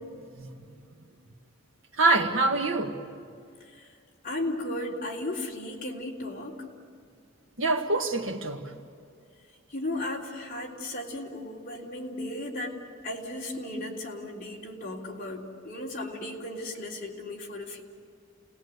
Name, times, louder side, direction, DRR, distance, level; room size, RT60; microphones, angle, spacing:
voice 1, 2.0-3.0 7.6-8.7, right 3 dB, 70° right, 3 dB, 1.9 m, -25 dB
voice 2, 4.2-6.7 9.7-17.8, left 1 dB, 40° left, -3 dB, 3.5 m, -35 dB
29.5 x 19.5 x 8.2 m, 2.3 s
head